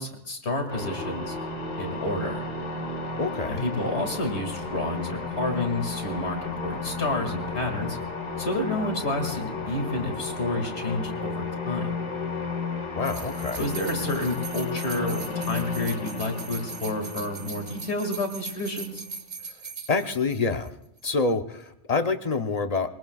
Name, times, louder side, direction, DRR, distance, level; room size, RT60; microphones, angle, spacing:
voice 1, 0.0-1.4 1.8-2.4 3.5-8.0 8.4-11.9 13.6-19.0, left 2 dB, 70° left, 4 dB, 2.6 m, -30 dB
sound 1, 0.7-19.0, left 4 dB, 85° left, 2.2 m, -33 dB
voice 2, 3.2-3.7 13.0-13.6 19.9-20.7 21.0-22.9, left 4 dB, 35° left, 7 dB, 0.8 m, -26 dB
sound 2, 13.0-20.7 21.0-21.1, right 5 dB, 35° right, 1.0 m, -40 dB
22.5 x 19.5 x 2.4 m, 0.76 s
omnidirectional pair, 1.2 m